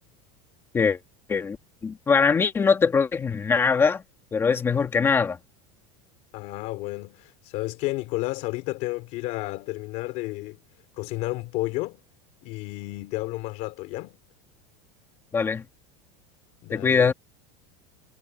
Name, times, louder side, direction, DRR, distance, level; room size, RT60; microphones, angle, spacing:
voice 1, 1.8-4.0 4.3-5.4 15.3-15.6 16.7-17.1, left 5 dB, 15° left, 1.6 m, -22 dB
voice 2, 6.3-10.6 11.0-12.0 12.4-14.2 16.6-17.1, left 20 dB, 45° left, 2.8 m, -32 dB
supercardioid pair, 175°, 18 cm